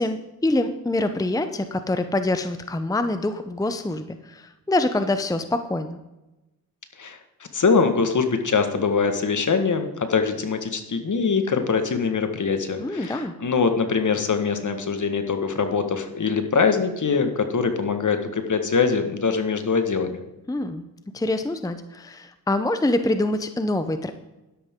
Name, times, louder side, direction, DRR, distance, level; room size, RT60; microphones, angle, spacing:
voice 1, 0.0-6.0 12.8-13.3 20.5-20.8 21.1-24.1, left 2 dB, 10° left, 9 dB, 0.7 m, -25 dB
voice 2, 7.5-20.2, left 5 dB, 50° left, 7 dB, 1.7 m, -23 dB
12.0 x 11.0 x 3.7 m, 1.0 s
cardioid pair, 65°, 40 cm